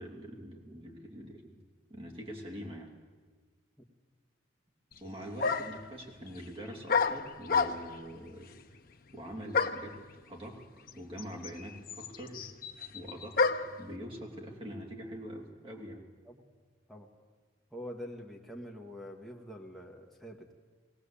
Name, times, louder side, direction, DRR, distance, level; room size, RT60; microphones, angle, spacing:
voice 1, 0.0-1.6 1.9-2.9 5.0-8.5 9.1-12.5 12.9-13.4 13.8-16.0, equal, 25° right, -1 dB, 3.0 m, -44 dB
sound 1, 4.9-5.0 5.4-5.9 6.9-8.0 9.5-9.9 10.9-11.0 11.2-13.8, left 5 dB, 45° left, 0.9 m, -30 dB
voice 2, 17.7-20.5, equal, ahead, -2 dB, 1.7 m, -45 dB
19.5 x 17.0 x 8.6 m, 1.5 s
head